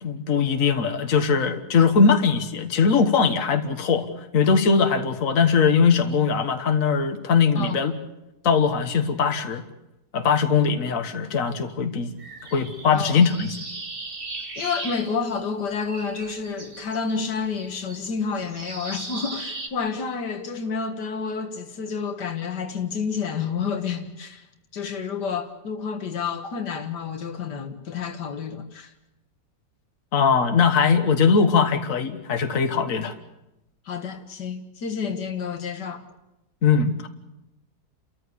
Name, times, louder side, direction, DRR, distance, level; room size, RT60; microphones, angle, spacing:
voice 1, 0.0-4.1 4.3-7.9 8.4-9.6 10.1-12.1 12.5-13.6 30.1-33.2 36.6-37.1, left 5 dB, 55° left, 1.8 m, -20 dB
sound 1, 12.2-15.6 15.9-19.7, right 3 dB, 35° right, 2.0 m, -38 dB
voice 2, 14.6-24.5 24.7-28.9 33.9-36.0, left 5 dB, 80° left, 2.2 m, -29 dB
29.5 x 14.0 x 8.5 m
omnidirectional pair, 1.8 m